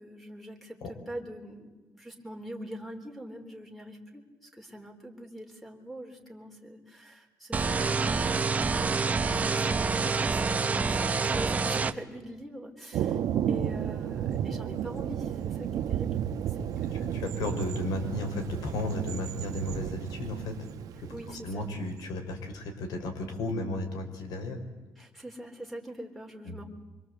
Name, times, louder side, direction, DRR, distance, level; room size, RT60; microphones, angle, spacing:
voice 1, 0.0-13.2 13.5-16.2 16.5-17.2 21.1-21.7 25.0-26.6, equal, ahead, 5 dB, 3.7 m, -44 dB
sound 1, 7.5-11.9, right 4 dB, 20° right, 0.8 m, -27 dB
Thunder, 12.9-21.9, right 9 dB, 65° right, 1.0 m, -33 dB
voice 2, 16.9-20.7 21.0-24.6 26.4-26.6, left 2 dB, 75° left, 6 dB, 5.5 m, -34 dB
26.0 x 24.0 x 8.3 m, 1.2 s
cardioid pair, 160°, 7 cm